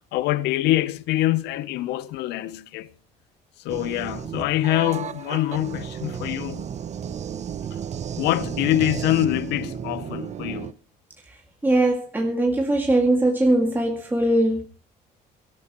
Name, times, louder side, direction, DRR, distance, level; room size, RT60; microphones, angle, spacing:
voice 1, 0.1-2.9 3.6-6.7 8.2-10.7, left 15 dB, 90° left, 0.8 m, -24 dB
sound 1, 3.7-10.7, right 8 dB, 40° right, 0.8 m, -33 dB
voice 2, 11.6-14.7, right 1 dB, 10° right, 2.1 m, -21 dB
23.0 x 13.5 x 3.0 m
cardioid pair, 110°, 17 cm